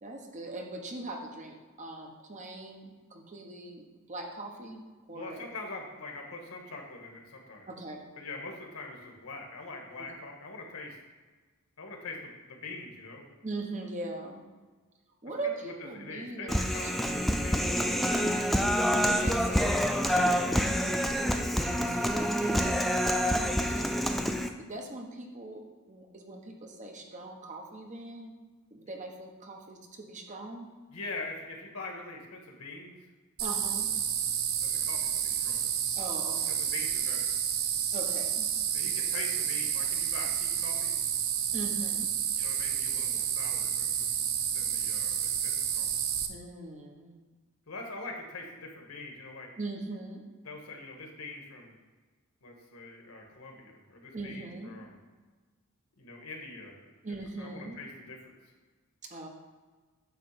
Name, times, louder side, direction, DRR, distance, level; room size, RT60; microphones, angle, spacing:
voice 1, 0.0-5.5 7.7-8.0 13.4-14.5 15.2-17.9 19.1-19.8 20.1-28.4 28.7-30.7 33.4-33.9 36.0-36.6 37.9-38.5 41.5-42.1 46.3-47.2 49.6-50.2 54.1-54.7 57.0-57.8 59.0-59.3, right 2 dB, 35° right, 2 dB, 1.1 m, -41 dB
voice 2, 5.1-7.7 8.2-11.0 11.8-13.3 15.6-18.4 30.9-33.1 34.6-35.7 36.7-37.4 38.7-41.0 42.3-44.1 44.5-45.9 47.7-49.5 50.5-51.7 52.4-55.0 56.0-56.8 57.4-58.3, left 3 dB, 80° left, 1 dB, 1.7 m, -43 dB
Human voice, 16.5-24.5, equal, ahead, 0.4 m, -27 dB
sound 1, 33.4-46.3, right 9 dB, 75° right, 0.8 m, -30 dB
9.1 x 3.3 x 6.7 m, 1.3 s
head